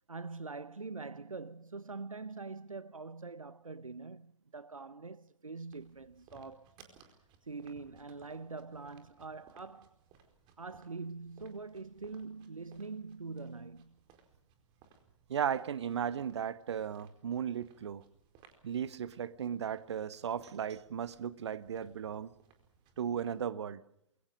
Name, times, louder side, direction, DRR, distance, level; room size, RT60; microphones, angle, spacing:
voice 1, 0.1-6.8 7.4-10.0 10.6-14.0, right 4 dB, 85° right, 0.8 m, -44 dB
sound 1, 5.7-23.5, right 6 dB, 30° right, 4.6 m, -64 dB
voice 2, 15.3-18.0 18.6-22.3 23.0-23.8, right 8 dB, 55° right, 1.3 m, -36 dB
28.0 x 23.0 x 5.1 m
figure-of-eight pair, 120°, 17 cm